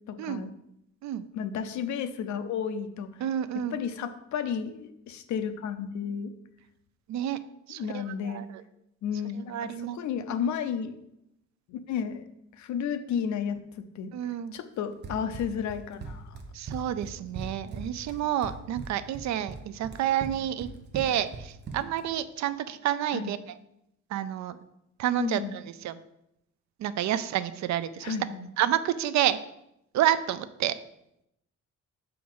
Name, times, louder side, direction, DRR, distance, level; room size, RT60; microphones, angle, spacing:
voice 1, 0.1-0.5 1.3-3.1 3.7-6.3 7.8-8.4 9.0-10.9 11.7-12.3 12.6-14.1 14.5-16.4 23.1-23.3 25.2-25.5 28.0-28.5, left 7 dB, 75° left, 9 dB, 0.7 m, -32 dB
voice 2, 3.2-3.8 7.1-7.4 7.7-8.4 9.5-10.0 14.1-14.6 16.5-20.7 20.9-23.4 24.1-24.6 25.0-25.4 25.8-26.0 26.8-28.2 28.6-29.4 29.9-30.7, right 11 dB, 70° right, 14 dB, 0.5 m, -29 dB
Run, 15.0-22.1, right 4 dB, 35° right, 0.9 m, -40 dB
6.1 x 4.6 x 5.5 m, 0.82 s
cardioid pair, 160°, 29 cm